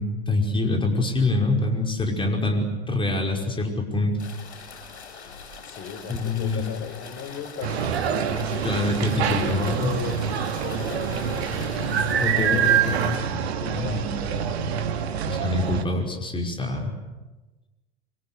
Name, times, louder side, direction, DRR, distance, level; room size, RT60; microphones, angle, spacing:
voice 1, 0.0-4.2 6.1-6.6 8.6-9.9 12.2-13.2 13.7-13.9 15.3-16.9, left 2 dB, 15° left, 2 dB, 5.6 m, -25 dB
sound 1, 4.2-13.2, left 5 dB, 75° left, 7.3 m, -42 dB
voice 2, 5.6-8.7 9.2-10.2 10.6-12.8 13.3-14.7, left 5 dB, 40° left, 7 dB, 4.8 m, -37 dB
sound 2, 7.6-15.8, right 8 dB, 65° right, 2.5 m, -26 dB
26.5 x 24.5 x 8.4 m, 1.1 s
figure-of-eight pair, 85°, 33 cm